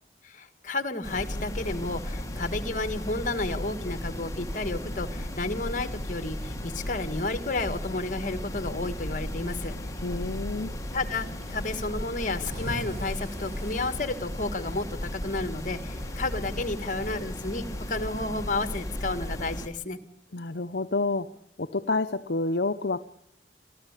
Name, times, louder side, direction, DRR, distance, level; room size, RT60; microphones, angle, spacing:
voice 1, 0.2-9.8 10.9-20.0, left 2 dB, 45° left, 11 dB, 1.8 m, -32 dB
sound 1, 1.0-19.7, left 1 dB, 15° left, 1.8 m, -35 dB
Cricket / Waves surf, 1.6-17.9, right 2 dB, 35° right, 6.1 m, -48 dB
voice 2, 10.0-10.7 20.3-21.3 21.6-23.0, left 3 dB, 60° left, 9 dB, 0.8 m, -28 dB
27.0 x 14.0 x 8.3 m, 0.70 s
head